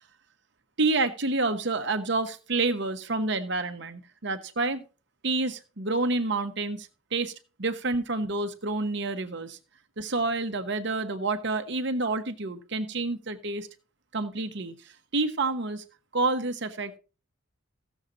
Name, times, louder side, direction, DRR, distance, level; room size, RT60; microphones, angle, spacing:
voice 1, 0.8-4.8 5.2-7.3 7.6-9.6 10.0-13.7 14.1-14.7 15.1-15.8 16.1-16.9, right 3 dB, 55° right, 8 dB, 1.0 m, -28 dB
15.5 x 7.2 x 3.8 m, 0.33 s
head